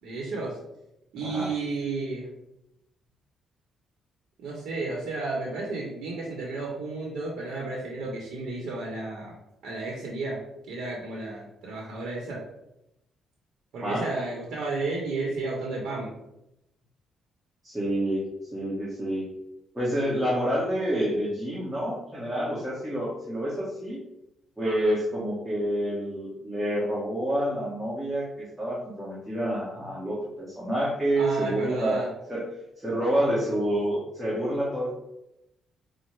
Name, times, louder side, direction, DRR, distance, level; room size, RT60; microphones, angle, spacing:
voice 1, 0.0-0.6 1.1-2.3 4.4-9.3 9.6-12.4 13.7-16.1 31.1-32.1, right 3 dB, 80° right, -2 dB, 0.9 m, -32 dB
voice 2, 17.6-18.2 18.5-19.3 19.7-24.0 24.6-32.0 32.3-32.4 32.8-34.9, right 1 dB, 10° right, -7 dB, 1.1 m, -28 dB
5.2 x 2.1 x 3.2 m, 0.86 s
cardioid pair, 90°, 0 cm